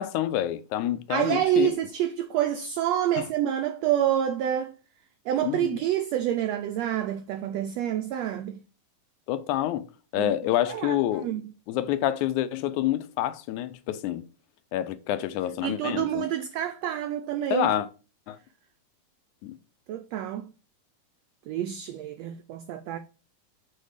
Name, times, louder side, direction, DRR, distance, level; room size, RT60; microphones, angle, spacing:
voice 1, 0.0-1.7 3.2-3.3 5.4-5.7 9.3-9.9 10.1-11.3 11.7-14.2 14.7-16.3 17.5-17.9 18.3-18.4 19.4-19.6, left 12 dB, 80° left, 1.9 m, -27 dB
voice 2, 1.1-4.7 5.3-8.6 10.2-10.3 10.7-11.0 11.2-11.4 15.6-17.7 19.9-20.5 21.5-23.0, right 11 dB, 85° right, 1.5 m, -27 dB
6.7 x 4.3 x 4.8 m
omnidirectional pair, 3.6 m